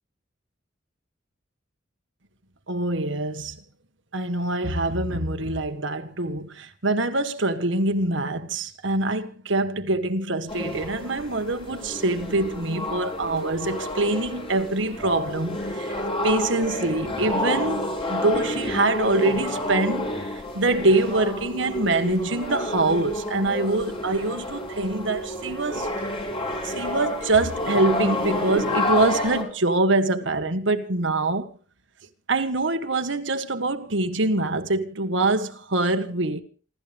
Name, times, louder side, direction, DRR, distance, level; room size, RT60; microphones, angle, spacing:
voice 1, 2.7-3.6 4.1-25.9 26.6-31.5 32.3-36.4, right 2 dB, 65° right, 1.6 m, -24 dB
sound 1, 10.5-29.4, left 1 dB, 30° left, 4.5 m, -29 dB
28.0 x 13.5 x 3.6 m
head